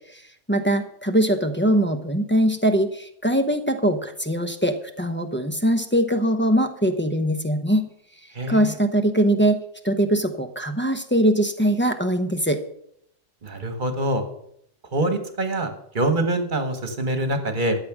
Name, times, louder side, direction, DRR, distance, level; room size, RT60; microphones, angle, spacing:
voice 1, 0.5-7.9 8.5-9.6 9.8-12.6, right 1 dB, 10° left, 4 dB, 0.8 m, -22 dB
voice 2, 8.4-8.7 13.4-14.2 14.9-17.7, right 1 dB, 45° right, 7 dB, 1.5 m, -25 dB
12.5 x 7.6 x 6.0 m, 0.71 s
omnidirectional pair, 1.2 m